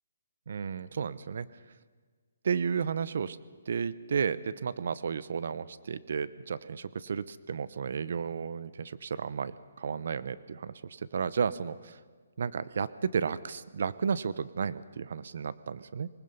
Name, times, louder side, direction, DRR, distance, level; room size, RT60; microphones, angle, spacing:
voice 1, 0.5-1.5 2.4-3.4 3.7-12.0 12.4-16.1, right 6 dB, 60° right, 16 dB, 0.8 m, -33 dB
25.0 x 20.5 x 5.5 m, 1.5 s
hypercardioid pair, 160°, 0 cm